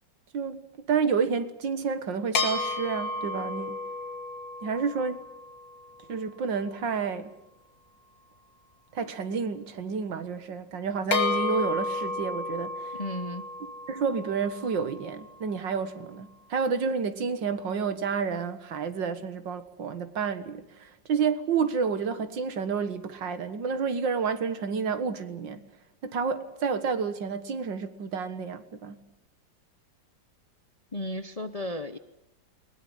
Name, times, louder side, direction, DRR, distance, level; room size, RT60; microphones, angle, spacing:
voice 1, 0.3-3.8 4.6-5.2 6.1-7.3 8.9-12.9 13.9-25.6 26.0-29.0, right 5 dB, 80° right, 2.2 m, -30 dB
sound 1, 2.3-6.0 11.1-15.5, left 3 dB, 85° left, 3.2 m, -32 dB
voice 2, 12.9-13.5 30.9-32.0, left 1 dB, 30° left, 0.8 m, -34 dB
21.0 x 20.5 x 9.9 m
omnidirectional pair, 2.0 m